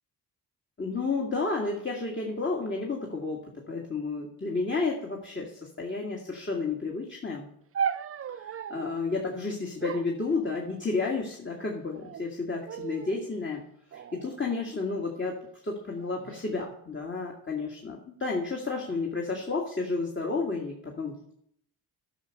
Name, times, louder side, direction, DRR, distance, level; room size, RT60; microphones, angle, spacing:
voice 1, 0.8-7.5 8.3-13.6 13.9-15.4 15.6-21.3, left 3 dB, 25° left, -1 dB, 2.0 m, -31 dB
sound 1, 7.7-9.0 9.8-11.0 11.8-12.3 12.7-13.2 13.9-15.2 16.0-16.4, right 7 dB, 35° right, 0.5 m, -37 dB
10.0 x 5.8 x 6.5 m, 0.70 s
cardioid pair, 70°, 43 cm